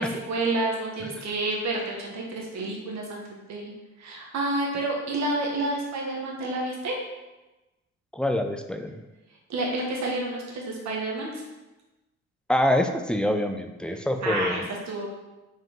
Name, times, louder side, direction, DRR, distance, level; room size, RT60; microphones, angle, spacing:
voice 1, 0.0-3.7 4.0-7.0 9.5-11.4 13.9-15.1, right 2 dB, 65° right, -2 dB, 1.5 m, -29 dB
voice 2, 8.1-9.0 12.5-14.6, left 1 dB, 5° left, 6 dB, 0.5 m, -25 dB
5.3 x 4.9 x 3.8 m, 1.1 s
cardioid pair, 90°, 30 cm